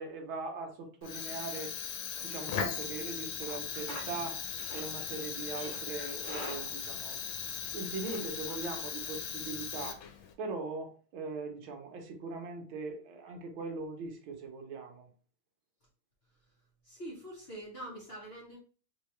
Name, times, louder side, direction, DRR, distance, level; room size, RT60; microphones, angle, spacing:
voice 1, 0.0-1.7 2.2-4.4 4.7-7.2 7.7-10.0 10.4-15.1, right 3 dB, 80° right, 1.7 m, -40 dB
Fire, 1.0-10.3, left 7 dB, 80° left, 1.5 m, -38 dB
Livestock farm animals working animals, 3.5-9.2, left 1 dB, 50° left, 2.2 m, -49 dB
voice 2, 16.8-18.6, right 1 dB, 35° left, 1.2 m, -44 dB
3.9 x 3.8 x 3.2 m
omnidirectional pair, 2.2 m